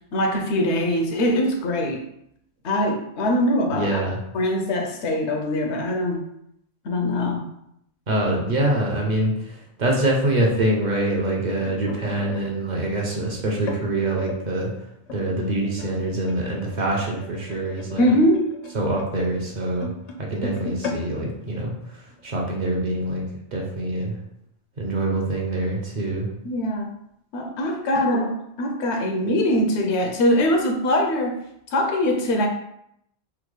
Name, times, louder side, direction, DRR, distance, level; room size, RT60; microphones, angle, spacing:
voice 1, 0.1-2.0 2.6-4.0 4.3-6.3 6.8-7.5 18.0-18.5 26.4-26.9 27.3-31.4 31.7-32.5, left 1 dB, 85° left, 3 dB, 0.9 m, -22 dB
voice 2, 3.7-4.2 8.1-14.7 15.1-18.0 18.7-19.9 20.2-23.2 23.5-24.2 24.8-26.3, right 1 dB, 50° right, -2 dB, 0.7 m, -25 dB
sound 1, 11.5-14.4 15.1-22.4 22.7-22.9 23.2-23.5 24.2-24.3, left 3 dB, 55° left, 0.5 m, -38 dB
3.5 x 2.1 x 3.1 m, 0.76 s
omnidirectional pair, 1.1 m